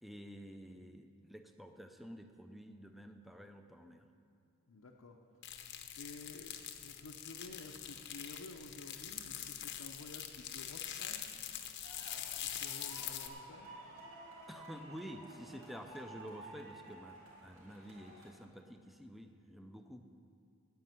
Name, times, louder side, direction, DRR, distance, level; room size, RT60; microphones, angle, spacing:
voice 1, 0.0-4.1 14.5-20.1, equal, ahead, 6 dB, 0.6 m, -50 dB
voice 2, 4.7-5.2 5.9-6.5 6.8-11.2 12.2-13.7, left 2 dB, 85° left, 0 dB, 0.8 m, -52 dB
sound 1, 5.4-13.3, left 10 dB, 55° left, 0.8 m, -44 dB
sound 2, 11.8-18.3, right 2 dB, 75° right, 3.1 m, -53 dB
9.4 x 8.6 x 9.4 m, 2.3 s
head